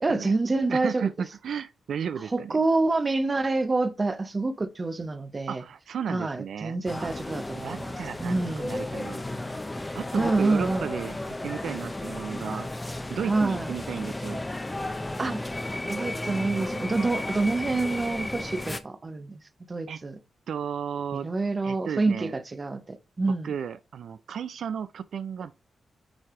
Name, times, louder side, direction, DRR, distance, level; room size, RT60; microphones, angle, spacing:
voice 1, 0.0-1.1 2.3-5.6 6.1-8.0 8.2-8.7 10.1-10.9 13.2-13.7 15.2-15.5 15.9-19.4 19.7-20.2 21.1-23.5, right 3 dB, 30° right, 0.6 m, -27 dB
voice 2, 0.7-2.6 5.5-7.1 7.6-9.2 9.9-11.2 11.4-12.7 13.1-14.4 19.9-20.0 20.5-21.3 21.6-22.3 23.4-25.5, right 7 dB, 75° right, 0.3 m, -34 dB
sound 1, 6.9-18.8, left 1 dB, 15° left, 0.6 m, -34 dB
8.9 x 3.3 x 3.6 m
wide cardioid pair, 110°, 0 cm